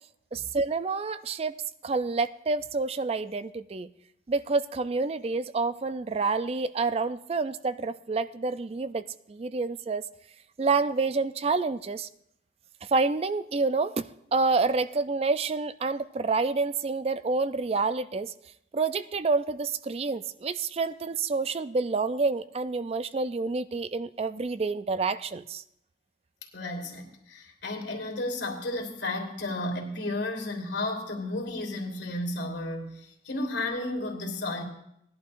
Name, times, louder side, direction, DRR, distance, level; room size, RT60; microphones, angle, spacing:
voice 1, 0.3-3.9 4.3-10.0 10.6-12.1 12.9-14.1 14.3-18.3 18.7-25.6, right 4 dB, 35° right, 13 dB, 0.4 m, -28 dB
voice 2, 26.5-34.6, left 2 dB, 85° left, 1 dB, 2.4 m, -33 dB
19.0 x 11.0 x 2.6 m, 0.77 s
head